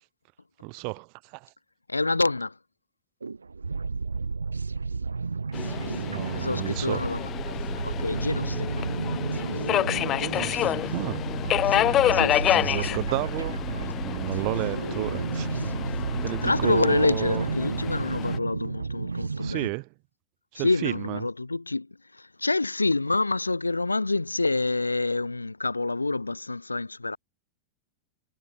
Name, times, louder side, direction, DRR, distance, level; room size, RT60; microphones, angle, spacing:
voice 1, 0.6-1.5 6.0-7.0 10.2-11.2 12.1-12.2 12.5-15.5 16.2-17.4 19.4-19.9 20.5-21.3, right 38 dB, 45° right, 2.7 m, -32 dB
voice 2, 1.9-2.5 6.3-7.3 7.8-8.7 11.7-12.9 16.4-19.7 20.5-21.9 22.1-27.2, left 3 dB, 80° left, 3.9 m, -27 dB
sound 1, 3.2-19.7, right 4 dB, 75° right, 1.0 m, -32 dB
Subway metro underground, 5.5-18.4, left 12 dB, 30° left, 3.0 m, -29 dB
figure-of-eight pair, 90°, 0 cm